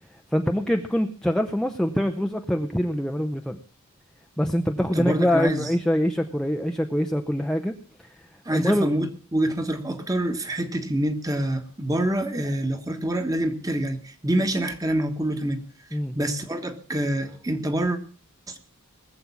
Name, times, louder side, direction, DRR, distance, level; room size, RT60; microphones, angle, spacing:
voice 1, 0.3-3.6 4.4-7.7 8.0-8.1 8.5-8.9 15.9-16.2, equal, 5° left, 4 dB, 0.6 m, -24 dB
voice 2, 4.9-5.7 8.4-15.6 15.9-18.0 18.5-18.6, right 1 dB, 15° right, 8 dB, 1.4 m, -26 dB
19.5 x 7.6 x 7.1 m, 0.41 s
head